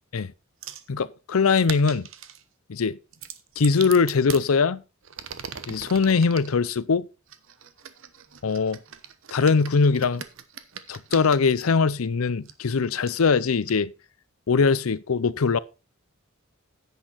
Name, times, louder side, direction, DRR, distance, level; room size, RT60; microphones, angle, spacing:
sound 1, 0.6-0.9 1.5-2.4 3.1-4.4 5.0-6.5 7.3-11.6 12.4-12.5 13.1-13.2 13.7-13.8, right 8 dB, 65° right, 1.0 m, -40 dB
voice 1, 0.9-2.1 2.7-3.0 3.6-4.8 5.7-7.1 8.4-8.8 9.3-10.2 10.9-13.9 14.5-15.6, left 5 dB, 80° left, 0.6 m, -21 dB
10.0 x 8.3 x 4.1 m
head